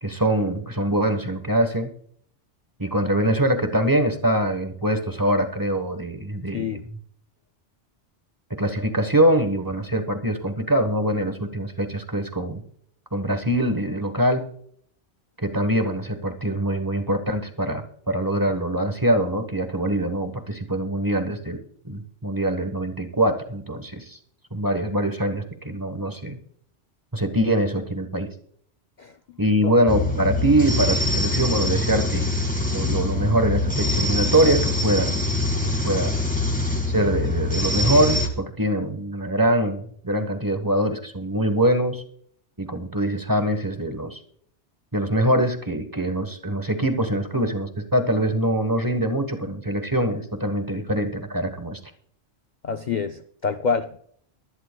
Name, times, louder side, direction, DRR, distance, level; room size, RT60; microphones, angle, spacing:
voice 1, 0.0-1.9 2.8-7.0 8.5-12.6 13.1-14.5 15.4-21.6 21.8-24.2 24.5-26.4 27.1-28.3 29.4-32.3 32.7-35.3 35.6-36.2 36.9-42.0 42.6-44.2 44.9-51.8, right 1 dB, 20° right, 7 dB, 1.1 m, -23 dB
voice 2, 6.5-6.8 29.0-29.1 29.6-29.7 50.8-50.9 52.6-54.0, left 5 dB, 50° left, 6 dB, 0.6 m, -27 dB
sound 1, 29.9-38.3, left 2 dB, 5° left, 2.1 m, -24 dB
23.0 x 11.0 x 2.3 m, 0.63 s
omnidirectional pair, 1.2 m